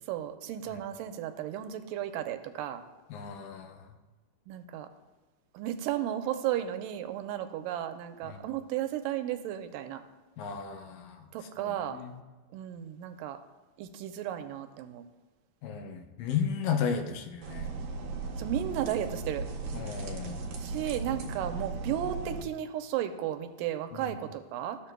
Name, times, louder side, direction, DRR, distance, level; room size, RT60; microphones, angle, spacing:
voice 1, 0.1-2.8 4.5-4.9 5.5-10.0 11.3-12.0 12.5-13.4 13.8-15.0 18.4-19.5 20.6-24.8, right 11 dB, 90° right, 8 dB, 2.3 m, -34 dB
voice 2, 3.1-3.9 8.2-8.4 10.4-11.3 11.6-12.1 15.6-17.7 19.7-20.5 23.9-24.2, left 7 dB, 85° left, 4 dB, 2.5 m, -34 dB
sound 1, 17.4-22.4, right 3 dB, 70° right, 2.1 m, -37 dB
14.0 x 7.0 x 2.2 m, 1.2 s
omnidirectional pair, 3.8 m